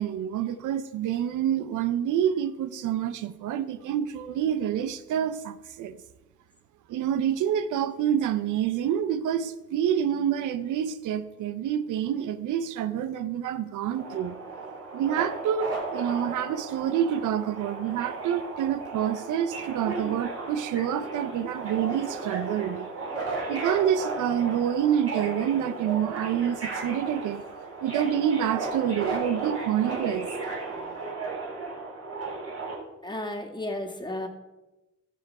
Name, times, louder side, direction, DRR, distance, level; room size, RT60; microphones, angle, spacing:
voice 1, 0.0-6.0 6.9-14.4 14.9-22.9 23.4-27.4 27.8-30.3 30.6-30.7, right 9 dB, 90° right, 0.6 m, -27 dB
Subway metro underground, 13.9-32.7, right 3 dB, 50° right, 3.6 m, -35 dB
voice 2, 33.0-34.3, left 1 dB, 15° left, 1.9 m, -33 dB
12.0 x 6.9 x 4.8 m
cardioid pair, 70°, 30 cm